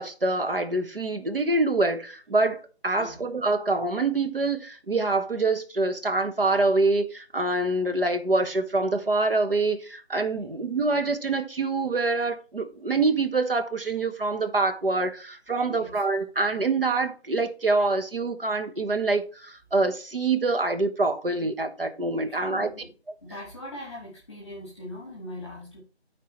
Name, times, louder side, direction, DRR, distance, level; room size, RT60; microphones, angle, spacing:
voice 1, 0.0-22.7, right 3 dB, 55° right, 1.2 m, -25 dB
voice 2, 15.6-16.0 22.2-22.9 23.2-25.8, left 1 dB, 5° left, 1.5 m, -41 dB
13.5 x 4.6 x 3.1 m
figure-of-eight pair, 175°, 33 cm